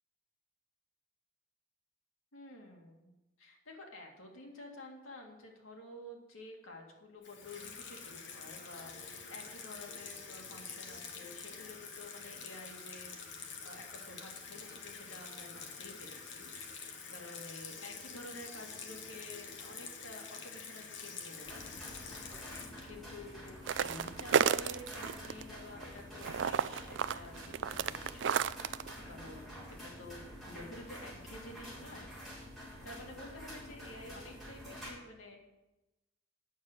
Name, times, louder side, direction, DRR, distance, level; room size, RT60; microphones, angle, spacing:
voice 1, 2.3-3.1 3.4-32.1 32.8-35.5, left 2 dB, 90° left, 1 dB, 2.3 m, -51 dB
Water tap faucet / Sink (filling or washing), 7.2-23.9, left 5 dB, 60° left, 1.4 m, -47 dB
sound 1, 21.4-34.9, equal, ahead, 4.3 m, -48 dB
sound 2, 23.7-25.4 25.8-28.9, right 7 dB, 60° right, 0.3 m, -31 dB
9.1 x 6.6 x 8.0 m, 1.0 s
head